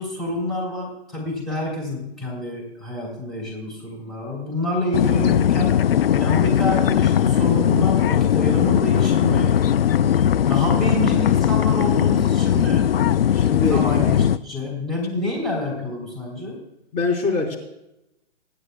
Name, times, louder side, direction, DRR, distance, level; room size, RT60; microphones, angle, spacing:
voice 1, 0.0-5.8 6.1-9.6 10.5-12.9 13.7-16.6, left 1 dB, ahead, -6 dB, 3.2 m, -27 dB
sound 1, 4.9-14.4, left 9 dB, 60° left, 0.5 m, -19 dB
voice 2, 13.3-13.8 15.2-15.3 16.9-17.6, left 3 dB, 20° left, -2 dB, 3.5 m, -23 dB
27.0 x 9.8 x 2.3 m, 0.89 s
figure-of-eight pair, 125°, 32 cm